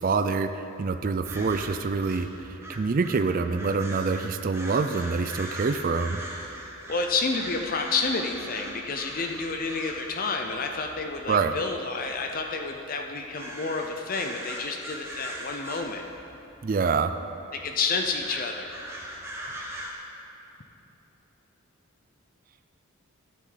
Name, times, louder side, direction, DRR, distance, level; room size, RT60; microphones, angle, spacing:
voice 1, 0.0-6.2 11.3-11.5 16.6-17.1, right 4 dB, 40° right, 9 dB, 0.4 m, -26 dB
sound 1, 1.2-19.9, right 1 dB, 10° right, 1.0 m, -41 dB
voice 2, 6.9-16.0 17.5-18.8, left 4 dB, 40° left, 4 dB, 0.6 m, -30 dB
13.5 x 9.3 x 4.0 m, 2.9 s
head